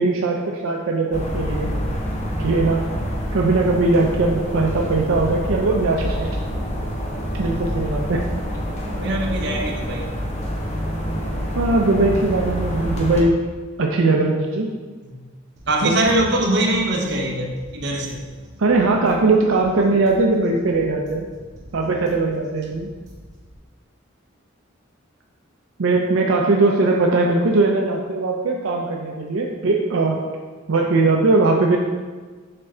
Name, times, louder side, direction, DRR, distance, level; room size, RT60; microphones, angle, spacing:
voice 1, 0.0-1.7 2.4-2.8 3.3-6.3 7.4-8.2 11.6-13.4 13.8-14.7 15.8-16.0 18.6-21.3 21.7-22.9 25.8-30.2 30.7-31.8, right 3 dB, 80° right, 0 dB, 0.5 m, -19 dB
sound 1, 1.1-13.2, equal, 35° left, 0.9 m, -27 dB
voice 2, 8.9-10.0 15.0-15.1 15.7-18.2, right 1 dB, 55° right, 0 dB, 0.9 m, -22 dB
sound 2, 15.6-23.6, equal, 35° right, 1.5 m, -45 dB
6.6 x 4.3 x 3.7 m, 1.4 s
head